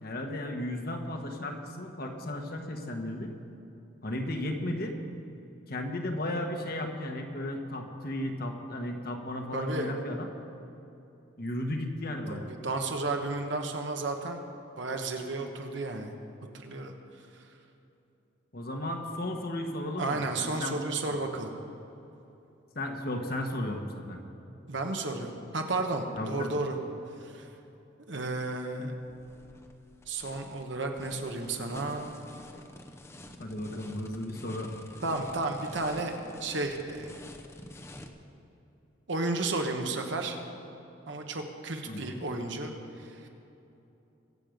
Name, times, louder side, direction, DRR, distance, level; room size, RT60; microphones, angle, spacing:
voice 1, 0.0-3.3 4.0-5.0 5.7-10.3 11.4-12.5 18.5-20.8 22.7-24.2 26.1-26.6 33.4-34.7 41.9-42.2, left 1 dB, 50° left, 3 dB, 1.3 m, -34 dB
voice 2, 9.5-9.9 12.3-14.4 14.8-16.1 16.5-16.9 20.0-21.6 24.7-26.8 27.2-27.5 28.1-28.9 30.1-32.1 35.0-36.1 36.4-37.2 39.1-40.4 41.1-43.3, right 2 dB, 65° right, 3 dB, 1.3 m, -33 dB
sound 1, 29.0-38.1, left 1 dB, 15° left, 0.7 m, -48 dB
23.0 x 7.8 x 5.2 m, 2.9 s
head